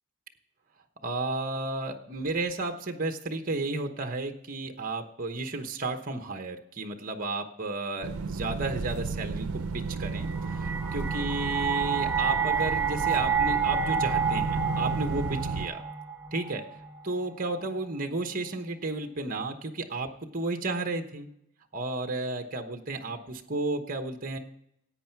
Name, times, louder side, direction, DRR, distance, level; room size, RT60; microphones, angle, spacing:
voice 1, 1.0-15.8 16.3-16.6 17.0-21.3 21.7-24.4, right 2 dB, 40° right, 6 dB, 1.1 m, -33 dB
sound 1, 8.0-15.7, right 4 dB, 80° right, 0.5 m, -33 dB
sound 2, 10.0-17.2, right 6 dB, 10° right, 0.9 m, -29 dB
16.5 x 8.9 x 4.6 m, 0.78 s
head